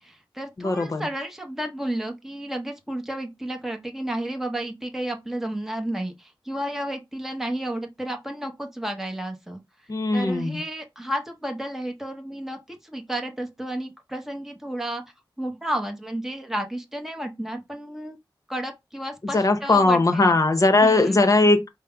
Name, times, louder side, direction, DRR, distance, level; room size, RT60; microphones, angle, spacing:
voice 1, 0.0-9.6 10.1-15.0 15.4-18.2 18.5-20.4 20.8-21.2, right 1 dB, 5° right, 0.8 m, -32 dB
voice 2, 0.6-1.0 9.9-10.6 19.3-21.7, left 2 dB, 40° left, 0.8 m, -19 dB
5.3 x 2.1 x 3.4 m
wide cardioid pair, 100°, 9 cm